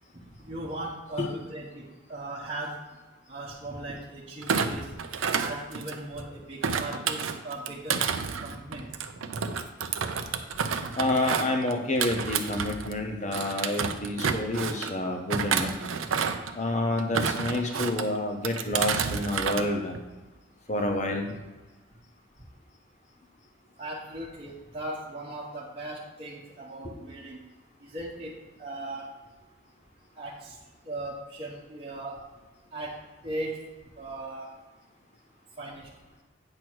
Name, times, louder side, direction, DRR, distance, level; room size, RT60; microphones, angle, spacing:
voice 1, 0.3-2.8 3.3-4.9 5.4-8.0 8.4-8.9 10.1-10.3 23.8-27.4 27.8-29.1 30.1-30.6 30.8-32.2 32.7-33.0 33.2-33.6 34.0-34.5 35.6-35.9, right 1 dB, 30° right, -6 dB, 1.1 m, -38 dB
Thump thud, 4.4-6.2 6.6-13.0 13.3-14.9 15.3-16.5 17.0-18.0 18.4-19.7 19.9-20.3, right 6 dB, 85° right, 0.5 m, -30 dB
voice 2, 11.0-15.7 16.5-20.0 20.7-21.3, left 1 dB, 35° left, 3 dB, 1.0 m, -28 dB
8.8 x 3.0 x 6.1 m, 1.2 s
head